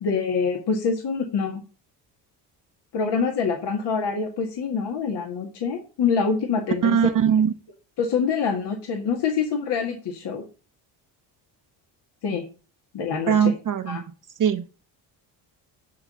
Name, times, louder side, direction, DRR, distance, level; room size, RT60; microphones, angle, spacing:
voice 1, 0.0-1.6 2.9-7.2 8.0-10.4 12.2-12.4 12.9-13.5 13.9-14.0, left 5 dB, 55° left, 2 dB, 1.9 m, -25 dB
voice 2, 6.8-7.5 13.3-14.0 14.4-14.6, right 8 dB, 40° right, 7 dB, 1.0 m, -20 dB
9.6 x 4.0 x 6.9 m, 0.35 s
supercardioid pair, 80°, 48 cm